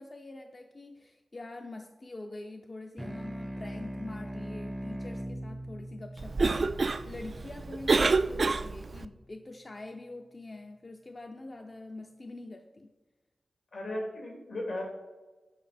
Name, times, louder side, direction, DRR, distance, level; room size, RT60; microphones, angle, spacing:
voice 1, 0.0-12.9, left 2 dB, 35° left, 4 dB, 0.5 m, -45 dB
sound 1, 3.0-7.8, equal, 10° right, 0.6 m, -40 dB
Cough, 6.2-9.1, right 3 dB, 50° right, 0.3 m, -28 dB
voice 2, 13.7-14.8, left 1 dB, 80° left, -1 dB, 2.5 m, -36 dB
7.7 x 5.2 x 4.2 m, 1.2 s
cardioid pair, 65°, 0 cm